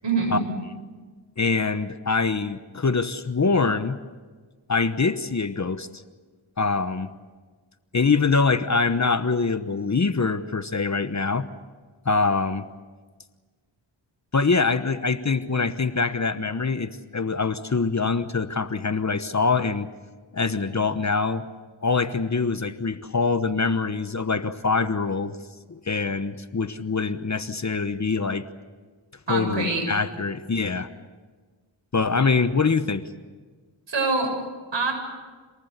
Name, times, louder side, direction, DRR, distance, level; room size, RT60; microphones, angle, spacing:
voice 1, 0.0-0.4 29.3-29.8 33.9-34.3 34.7-34.9, right 3 dB, 65° right, 2 dB, 7.7 m, -24 dB
voice 2, 1.4-4.0 4.7-5.9 6.6-7.1 7.9-11.5 12.0-12.7 14.3-19.9 20.3-21.5 21.8-25.4 25.7-28.5 29.3-30.9 31.9-33.1, left 4 dB, 35° left, 11 dB, 1.1 m, -24 dB
27.5 x 19.5 x 8.2 m, 1.4 s
cardioid pair, 70°, 48 cm